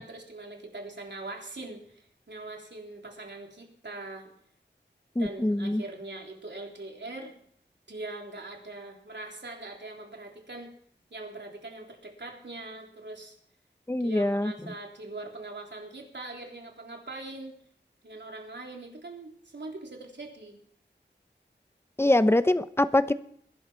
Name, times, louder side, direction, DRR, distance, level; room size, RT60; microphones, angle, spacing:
voice 1, 0.0-4.3 5.2-7.3 7.9-10.7 11.1-13.3 14.0-17.6 18.0-20.6, right 2 dB, 70° right, 1 dB, 3.5 m, -42 dB
voice 2, 5.2-5.8 13.9-14.5 22.0-23.1, left 1 dB, 15° left, 12 dB, 0.8 m, -23 dB
21.5 x 11.0 x 4.5 m, 0.64 s
wide cardioid pair, 65°, 19 cm